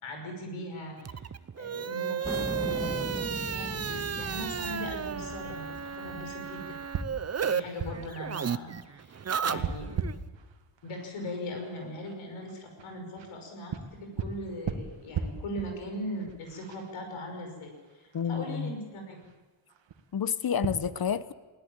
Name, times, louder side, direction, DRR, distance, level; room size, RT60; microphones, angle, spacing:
voice 1, 0.0-1.3 1.6-6.8 7.4-10.0 10.8-19.2, left 1 dB, 85° left, 4 dB, 5.8 m, -40 dB
sound 1, 0.8-20.8, right 6 dB, 65° right, 2.0 m, -41 dB
sound 2, 1.0-7.6 7.9-10.1, right 7 dB, 30° right, 0.8 m, -33 dB
sound 3, 2.2-6.9, equal, 5° left, 2.3 m, -39 dB
voice 2, 18.1-18.7 20.1-21.3, left 7 dB, 50° left, 15 dB, 1.1 m, -29 dB
21.0 x 17.0 x 8.8 m, 1.3 s
cardioid pair, 75°, 48 cm